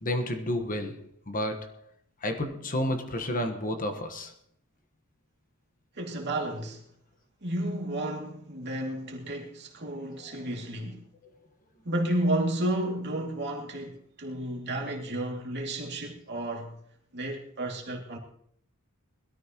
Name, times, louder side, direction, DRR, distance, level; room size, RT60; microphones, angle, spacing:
voice 1, 0.0-1.8 2.2-4.3, left 1 dB, 40° left, 1.4 m, -31 dB
voice 2, 6.0-6.8 7.4-11.0 11.8-16.8 17.1-18.2, right 1 dB, 50° right, 2.6 m, -32 dB
21.0 x 13.5 x 3.0 m
head